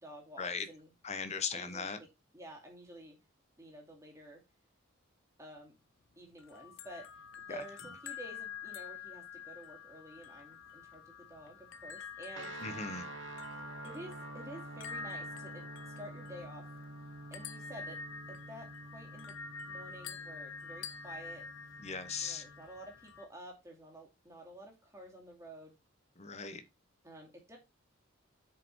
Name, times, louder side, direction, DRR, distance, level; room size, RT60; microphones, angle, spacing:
voice 1, 0.0-0.9 1.5-2.1 2.3-3.2 3.6-4.4 5.4-5.7 6.2-7.1 7.4-12.6 13.8-15.7 16.0-16.7 17.3-18.0 18.3-19.4 19.7-21.5 22.2-25.8 27.0-27.6, right 1 dB, 15° right, 2.5 m, -50 dB
voice 2, 1.0-2.0 7.5-7.6 12.6-13.1 21.8-22.4 26.2-26.6, left 5 dB, 35° left, 0.9 m, -38 dB
sound 1, 6.4-23.3, left 5 dB, 70° left, 0.8 m, -47 dB
sound 2, 12.3-22.7, right 3 dB, 60° right, 0.6 m, -49 dB
7.0 x 5.2 x 4.5 m
head